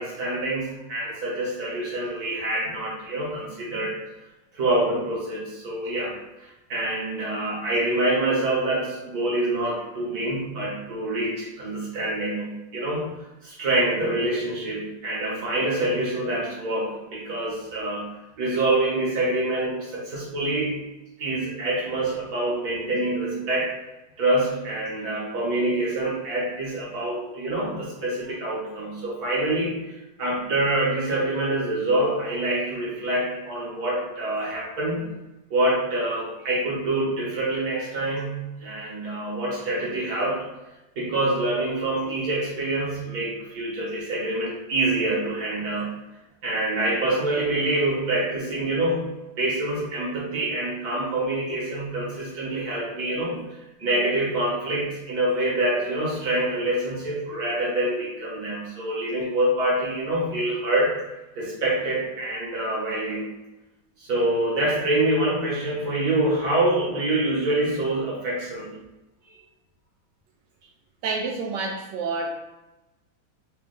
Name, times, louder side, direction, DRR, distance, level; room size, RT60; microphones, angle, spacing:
voice 1, 0.0-3.9 4.5-6.1 6.4-13.1 13.4-18.1 18.4-20.8 21.2-23.7 24.2-35.1 35.5-40.4 41.0-45.9 46.4-49.1 49.4-53.4 53.8-60.9 61.4-63.3 64.0-68.7, right 1 dB, 55° right, -4 dB, 1.2 m, -26 dB
voice 2, 71.0-72.3, right 3 dB, 80° right, 1 dB, 0.9 m, -28 dB
3.6 x 2.4 x 3.7 m, 1.0 s
omnidirectional pair, 2.4 m